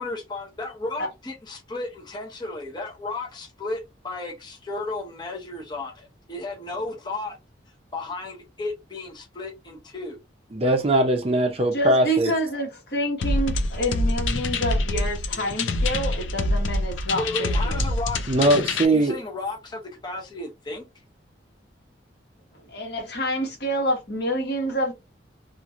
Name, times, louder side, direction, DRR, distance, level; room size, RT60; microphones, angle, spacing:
voice 1, 0.0-7.4 7.9-10.2 15.3-15.5 17.1-20.9, left 2 dB, 25° left, 0.7 m, -34 dB
voice 2, 10.5-12.3 18.3-19.2, right 1 dB, 30° right, 0.5 m, -20 dB
voice 3, 11.7-17.9 22.6-24.9, equal, 55° left, 1.3 m, -27 dB
sound 1, 13.2-18.9, left 2 dB, 80° left, 0.5 m, -25 dB
3.0 x 2.5 x 2.4 m
head